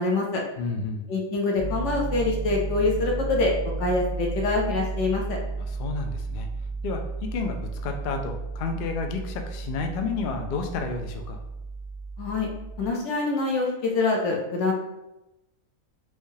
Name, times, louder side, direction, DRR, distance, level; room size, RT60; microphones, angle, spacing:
voice 1, 0.0-0.4 1.1-3.5 3.8-5.4 12.2-12.5 12.8-14.7, left 3 dB, 65° left, 0 dB, 0.9 m, -25 dB
voice 2, 0.6-1.1 5.7-6.5 6.8-11.4, left 4 dB, 85° left, 4 dB, 0.4 m, -31 dB
Piano, 1.6-12.9, right 4 dB, 5° left, 0.7 m, -33 dB
3.4 x 3.1 x 2.7 m, 0.94 s
omnidirectional pair, 1.5 m